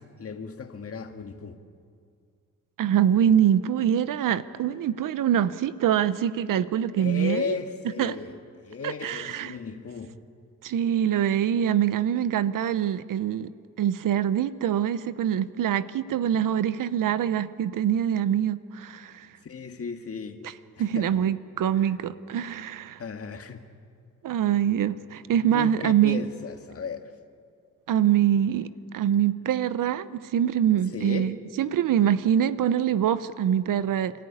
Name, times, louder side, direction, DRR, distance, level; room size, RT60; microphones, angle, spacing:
voice 1, 0.0-1.6 7.0-10.2 19.4-20.4 20.8-21.1 21.8-21.9 23.0-23.6 25.5-27.1 30.9-31.3, left 6 dB, 45° left, 1.9 m, -35 dB
voice 2, 2.8-7.5 8.0-8.2 8.8-9.6 10.6-13.5 13.8-19.3 20.8-23.0 24.2-26.2 27.9-28.7 28.9-34.1, right 9 dB, 70° right, 0.9 m, -24 dB
28.5 x 14.0 x 9.9 m
cardioid pair, 95°, 33 cm